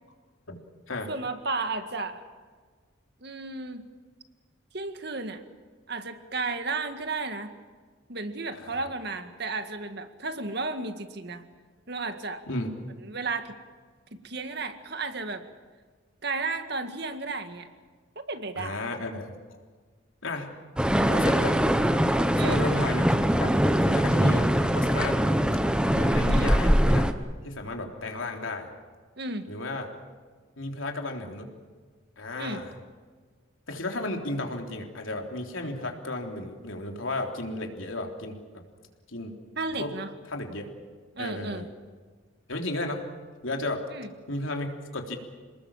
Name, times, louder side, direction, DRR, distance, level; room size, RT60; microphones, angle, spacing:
voice 1, 1.1-2.2 3.2-3.9 4.7-5.4 5.9-7.6 8.1-11.4 11.9-12.4 13.0-13.6 14.1-15.4 16.2-17.7 18.2-18.8 22.4-22.6 26.3-26.6 29.2-29.5 32.4-32.6 39.6-40.1 41.2-41.7 43.9-44.1, right 3 dB, 55° right, 8 dB, 1.9 m, -33 dB
voice 2, 8.5-8.9 12.5-12.7 18.6-19.4 20.2-20.5 21.0-21.6 22.4-23.6 23.9-25.2 25.9-27.2 27.4-28.7 29.5-29.9 30.6-31.5 32.2-32.7 33.7-38.4 39.1-39.3 39.8-39.9 40.3-40.7 41.2-41.7 42.5-43.1 43.4-43.9 44.3-45.2, left 2 dB, 80° left, 2 dB, 3.6 m, -33 dB
sound 1, 20.8-27.1, equal, 5° right, 1.0 m, -22 dB
28.5 x 20.0 x 7.3 m, 1.5 s
head